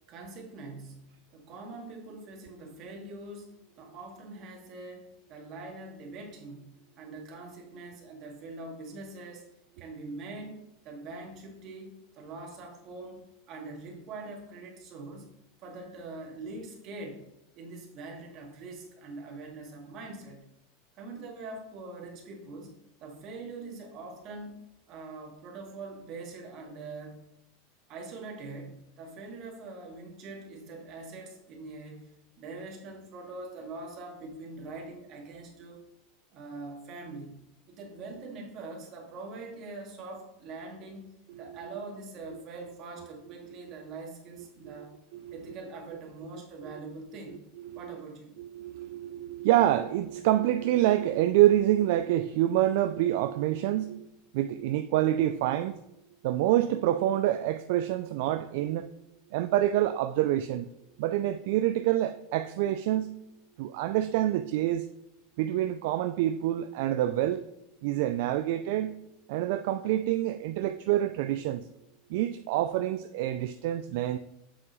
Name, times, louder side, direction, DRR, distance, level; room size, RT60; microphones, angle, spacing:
voice 1, 0.1-6.7 7.0-9.5 9.8-15.3 15.6-17.2 17.6-20.5 20.9-24.6 24.9-27.2 27.9-32.1 32.4-35.8 36.3-37.4 37.7-41.0 41.4-45.0 45.3-47.4 47.8-48.4, right 3 dB, 45° right, 1.9 m, -43 dB
voice 2, 45.1-45.6 46.3-46.7 47.7-47.8 48.4-54.1 54.3-55.7 56.2-58.9 59.3-60.7 61.0-63.2 63.6-64.9 65.4-67.4 67.8-69.0 69.3-71.7 72.1-74.2, right 13 dB, 65° right, 0.3 m, -27 dB
7.4 x 6.1 x 3.1 m
hypercardioid pair, 105°, 0 cm